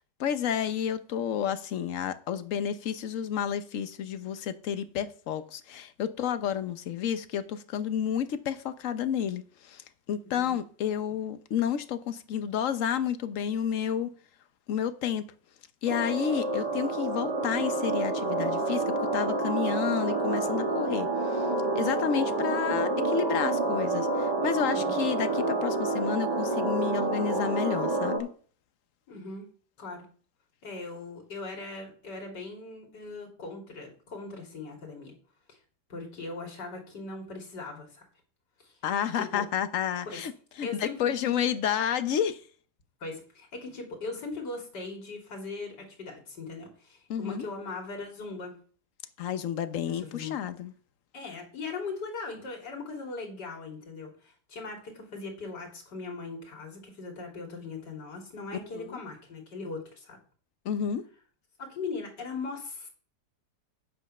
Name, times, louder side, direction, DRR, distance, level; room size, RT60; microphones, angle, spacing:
voice 1, 0.2-9.8 10.1-14.1 14.7-15.2 15.8-21.5 21.8-28.3 38.8-40.3 40.6-42.4 47.1-47.5 49.2-50.7 58.7-59.0 60.6-61.0, left 8 dB, 55° left, 1.1 m, -30 dB
voice 2, 10.2-10.5 24.7-25.0 29.1-29.5 29.8-30.1 30.6-35.1 35.5-35.6 35.9-38.1 38.6-38.7 39.1-39.4 40.0-40.2 40.6-41.1 43.0-48.5 49.9-50.4 51.1-60.2 61.6-62.9, left 3 dB, 75° left, 3.1 m, -39 dB
sound 1, 15.9-28.2, right 2 dB, 75° right, 2.5 m, -28 dB
8.3 x 8.1 x 5.4 m
omnidirectional pair, 1.8 m